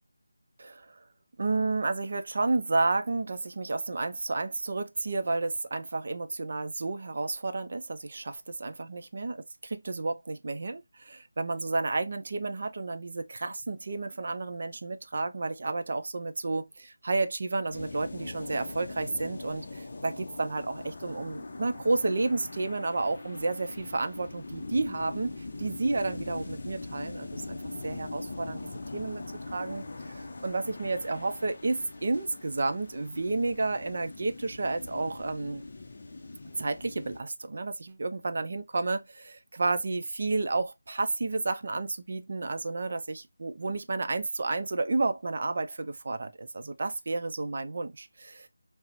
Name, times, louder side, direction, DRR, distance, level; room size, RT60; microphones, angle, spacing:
voice 1, 0.6-0.9 1.4-9.4 9.6-28.6 28.9-29.2 29.5-35.6 36.4-48.5, right 3 dB, 45° right, 0.4 m, -31 dB
sound 1, 17.7-37.2, left 2 dB, 40° left, 0.5 m, -41 dB
4.2 x 2.0 x 2.4 m
figure-of-eight pair, 175°, 0 cm